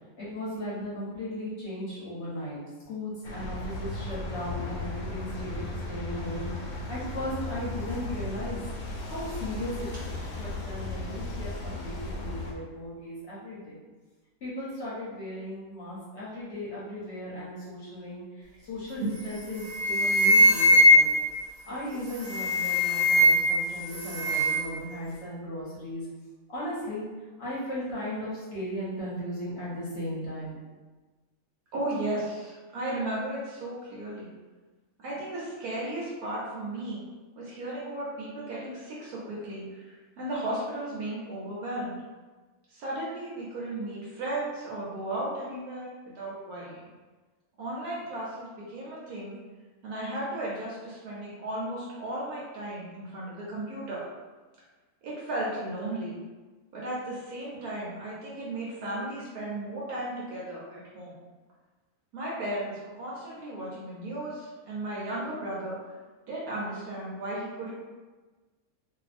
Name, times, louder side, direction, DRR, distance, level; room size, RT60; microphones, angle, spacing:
voice 1, 0.2-2.6 2.9-8.6 9.1-13.8 14.4-21.1 21.7-26.1 26.5-27.1 27.4-30.6, left 1 dB, 55° left, -7 dB, 1.0 m, -36 dB
sound 1, 3.2-12.5, left 2 dB, 85° left, 1.1 m, -36 dB
sound 2, 19.2-19.4 19.7-21.3 22.1-23.6 23.9-24.7, left 1 dB, 65° right, 1.2 m, -20 dB
voice 2, 31.7-34.3 35.0-37.0 37.4-42.0 42.7-46.8 47.6-49.4 49.8-54.0 55.0-56.1 56.7-61.1 62.1-65.8 66.3-67.7, right 1 dB, 85° right, -7 dB, 1.2 m, -35 dB
2.6 x 2.5 x 2.4 m, 1.3 s
omnidirectional pair, 1.5 m